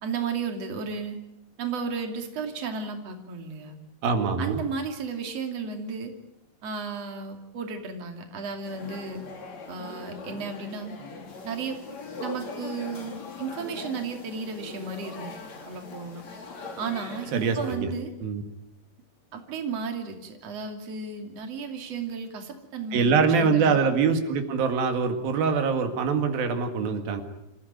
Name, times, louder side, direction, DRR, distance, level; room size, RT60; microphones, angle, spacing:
voice 1, 0.0-1.2 1.6-3.8 4.4-6.1 6.6-9.3 9.7-10.9 11.4-11.8 12.2-15.4 15.7-16.2 16.8-18.1 19.3-23.8, right 5 dB, 45° right, 4 dB, 3.6 m, -34 dB
voice 2, 4.0-4.6 17.3-17.9 18.2-18.4 22.9-27.2, right 5 dB, 90° right, 6 dB, 3.7 m, -24 dB
sound 1, 8.6-17.8, left 4 dB, 50° left, 4.5 m, -41 dB
28.0 x 15.5 x 9.1 m, 0.90 s
omnidirectional pair, 4.1 m